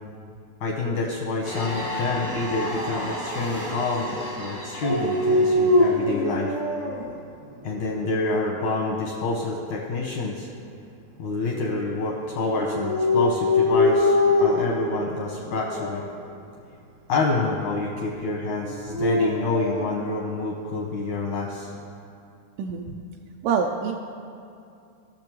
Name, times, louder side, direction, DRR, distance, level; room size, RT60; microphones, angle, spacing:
voice 1, 0.6-6.5 7.6-10.5 11.2-16.0 17.1-21.7, left 3 dB, 80° left, -2 dB, 1.7 m, -27 dB
sound 1, 1.4-6.1, left 1 dB, 35° right, 0.5 m, -33 dB
Dog, 4.8-7.0 7.6-8.4 12.5-14.8 15.6-16.1 18.6-19.9, left 2 dB, 65° right, 1.3 m, -22 dB
voice 2, 23.4-23.9, right 6 dB, 85° right, 2 dB, 2.6 m, -25 dB
20.0 x 6.8 x 3.0 m, 2.5 s
omnidirectional pair, 4.7 m